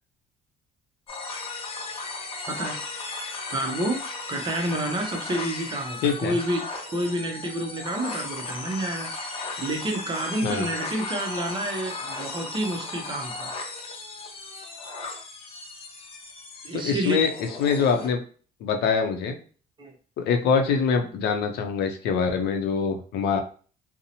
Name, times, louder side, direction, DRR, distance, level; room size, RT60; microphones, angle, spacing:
sound 1, 1.1-18.1, left 3 dB, 35° left, 0.6 m, -36 dB
voice 1, 2.5-2.8 3.5-4.0 4.3-6.6 6.9-13.5 16.6-17.2 19.8-19.9, right 1 dB, 30° right, 2 dB, 0.6 m, -29 dB
voice 2, 6.0-6.3 10.4-10.7 16.7-18.2 18.6-19.4 20.2-23.4, left 6 dB, 75° left, 5 dB, 0.5 m, -24 dB
2.7 x 2.0 x 2.7 m, 0.41 s
cardioid pair, 110°, 17 cm